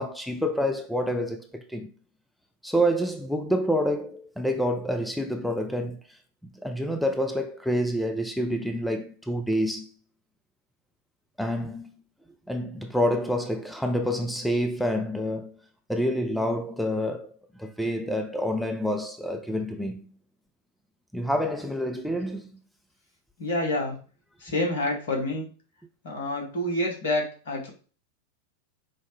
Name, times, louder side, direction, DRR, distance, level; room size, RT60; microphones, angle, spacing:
voice 1, 0.0-1.9 2.6-6.0 6.6-9.9 11.4-11.9 12.5-15.6 15.9-17.3 17.6-20.1 21.1-22.5, equal, ahead, 0.4 m, -27 dB
voice 2, 23.4-23.9 24.4-25.5 26.0-27.7, left 1 dB, 60° left, 1.1 m, -28 dB
4.8 x 2.1 x 3.2 m
figure-of-eight pair, 90°, 0 cm